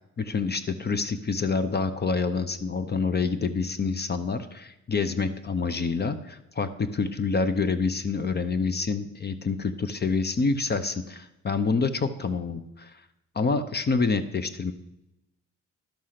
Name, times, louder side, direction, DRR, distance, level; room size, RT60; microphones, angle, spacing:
voice 1, 0.2-12.9 13.4-14.7, left 4 dB, 35° left, 12 dB, 0.8 m, -27 dB
12.0 x 6.3 x 5.8 m, 0.90 s
cardioid pair, 90°, 30 cm